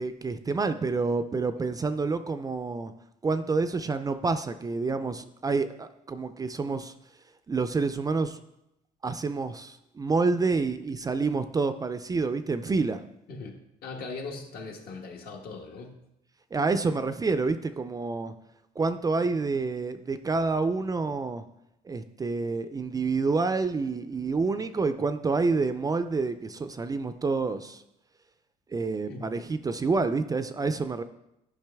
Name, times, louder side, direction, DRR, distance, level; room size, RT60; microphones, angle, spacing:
voice 1, 0.0-2.9 3.2-6.9 7.5-8.4 9.0-13.0 16.5-18.3 18.8-21.4 21.9-27.8 28.7-31.0, right 4 dB, 20° right, 10 dB, 0.4 m, -28 dB
voice 2, 13.3-16.0 29.1-29.3, left 3 dB, 65° left, 2 dB, 1.4 m, -40 dB
10.5 x 5.3 x 3.4 m, 0.84 s
cardioid pair, 110°, 17 cm